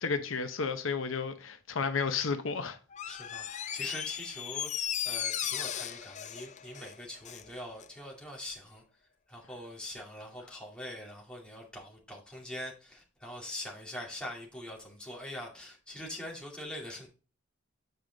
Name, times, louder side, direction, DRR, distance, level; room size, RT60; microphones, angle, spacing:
voice 1, 0.0-2.8, left 5 dB, 80° left, 0.8 m, -32 dB
Door, 2.9-7.5 7.8-7.9, left 10 dB, 35° left, 0.4 m, -36 dB
voice 2, 3.0-8.8 9.3-17.1, left 1 dB, 5° left, 2.3 m, -43 dB
8.1 x 5.0 x 3.9 m
head